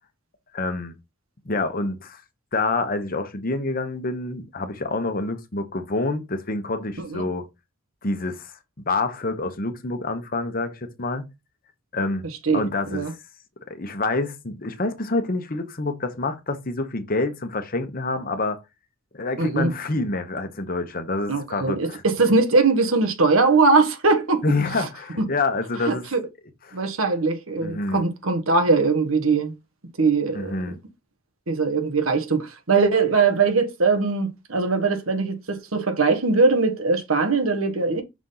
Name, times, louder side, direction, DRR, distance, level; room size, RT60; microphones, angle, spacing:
voice 1, 0.5-0.9 1.5-2.2 2.5-7.4 8.0-8.6 8.9-11.3 11.9-12.2 12.5-13.2 13.7-18.6 19.1-22.0 24.4-26.0 26.7-26.8 27.6-28.0 30.3-30.8, left 2 dB, 45° left, 1.0 m, -27 dB
voice 2, 12.4-13.1 19.4-19.7 21.3-24.4 24.8-24.9 25.8-26.2 26.7-29.5 30.0-30.5 31.5-38.0, right 4 dB, 90° right, 1.4 m, -21 dB
6.1 x 4.1 x 3.9 m
head